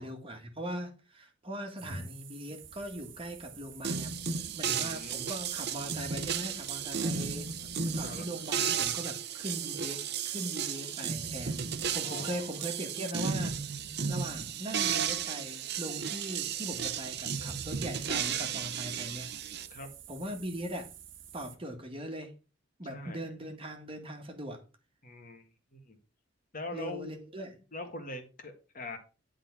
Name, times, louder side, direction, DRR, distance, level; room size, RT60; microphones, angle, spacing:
voice 1, 0.0-4.2 4.5-13.6 14.1-19.5 20.1-20.9 21.3-22.3 22.8-24.6 26.7-27.6, right 1 dB, 30° right, 1.6 m, -40 dB
sound 1, 1.8-21.6, right 10 dB, 75° right, 1.3 m, -51 dB
sound 2, 3.8-19.7, right 7 dB, 55° right, 0.8 m, -34 dB
voice 2, 4.7-5.2 6.9-7.1 7.7-8.3 12.0-12.5 19.7-19.9 22.9-23.3 25.0-25.4 25.7-26.0 26.5-27.1 27.7-29.0, left 2 dB, 45° left, 1.7 m, -42 dB
10.5 x 3.9 x 6.0 m
head